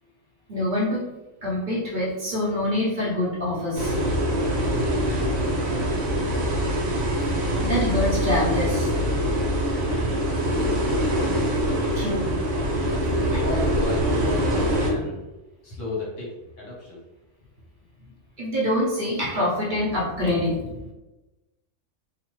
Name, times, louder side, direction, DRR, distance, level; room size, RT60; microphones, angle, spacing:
voice 1, 0.5-1.0 1.4-3.9 7.6-8.9 11.9-12.3 13.3-13.4 18.4-20.9, left 1 dB, 50° right, -5 dB, 0.8 m, -25 dB
sound 1, 3.8-14.9, equal, 90° right, 1.0 m, -24 dB
voice 2, 5.1-6.6 9.9-11.4 13.4-15.2 15.6-16.3 16.6-17.0, left 2 dB, 75° left, -5 dB, 1.4 m, -34 dB
2.9 x 2.1 x 3.0 m, 1.1 s
omnidirectional pair, 1.3 m